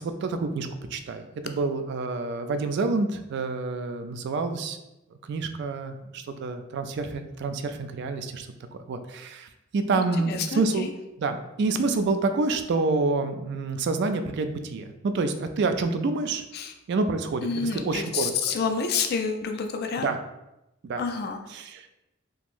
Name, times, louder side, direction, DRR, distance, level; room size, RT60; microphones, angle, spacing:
voice 1, 0.0-4.8 5.3-8.5 8.9-10.9 11.2-16.4 16.9-18.6 20.0-20.2 20.8-21.0 21.5-21.9, right 3 dB, 60° right, 8 dB, 0.3 m, -28 dB
voice 2, 9.9-10.9 16.5-16.7 17.4-20.1 21.0-21.4, left 5 dB, 55° left, 6 dB, 0.4 m, -29 dB
3.6 x 2.9 x 2.5 m, 0.92 s
head